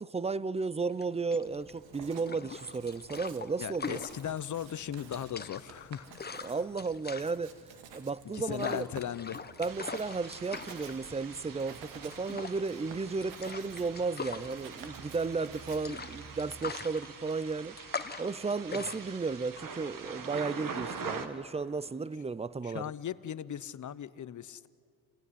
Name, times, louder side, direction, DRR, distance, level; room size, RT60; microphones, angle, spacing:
voice 1, 0.0-4.0 6.4-7.5 7.9-8.9 9.6-17.8 18.2-22.9, right 4 dB, 15° right, 0.5 m, -34 dB
sound 1, 0.9-20.6, left 5 dB, 20° left, 1.1 m, -43 dB
Writing, 1.4-16.8, right 6 dB, 85° right, 2.1 m, -52 dB
voice 2, 3.6-6.6 8.3-9.5 18.7-18.9 22.6-24.7, left 10 dB, 45° left, 0.8 m, -38 dB
sound 2, 9.7-21.3, right 5 dB, 50° right, 2.0 m, -44 dB
28.5 x 16.5 x 9.8 m
cardioid pair, 85°, 43 cm